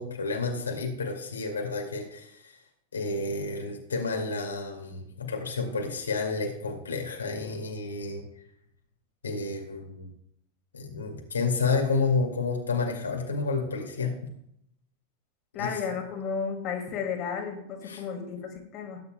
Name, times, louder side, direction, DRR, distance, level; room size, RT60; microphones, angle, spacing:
voice 1, 0.0-2.6 2.9-8.2 9.2-10.1 10.7-14.1 15.6-15.8 17.8-18.1, left 4 dB, 70° left, 1 dB, 2.3 m, -30 dB
voice 2, 15.5-19.0, left 6 dB, 35° left, 2 dB, 2.4 m, -33 dB
18.0 x 9.5 x 2.3 m, 0.73 s
figure-of-eight pair, 90°, 0 cm